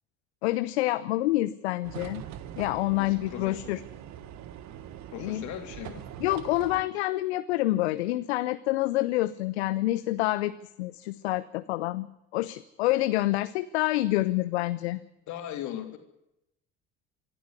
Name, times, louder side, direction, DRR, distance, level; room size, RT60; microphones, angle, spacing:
voice 1, 0.4-2.2 2.6-3.8 5.2-5.4 6.2-10.5 10.8-12.1 12.3-15.0, left 17 dB, 80° left, 14 dB, 0.7 m, -27 dB
sound 1, 1.8-6.8, right 10 dB, 60° right, 1.5 m, -43 dB
voice 2, 2.9-3.7 5.1-6.0 15.3-16.0, left 11 dB, 65° left, 5 dB, 3.3 m, -38 dB
25.0 x 12.5 x 9.7 m, 0.84 s
hypercardioid pair, 60°, 32 cm